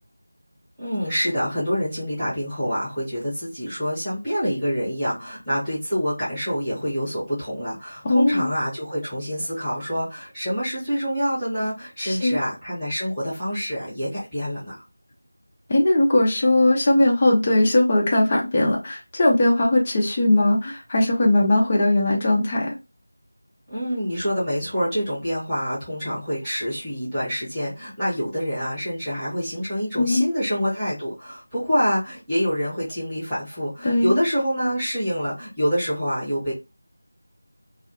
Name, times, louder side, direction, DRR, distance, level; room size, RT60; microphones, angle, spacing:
voice 1, 0.8-14.8 23.7-36.5, equal, ahead, 0.8 m, -26 dB
voice 2, 8.0-8.5 12.0-12.4 15.7-22.7 30.0-30.2 33.8-34.2, left 1 dB, 15° left, 0.3 m, -19 dB
2.2 x 2.1 x 2.7 m
figure-of-eight pair, 180°, 0 cm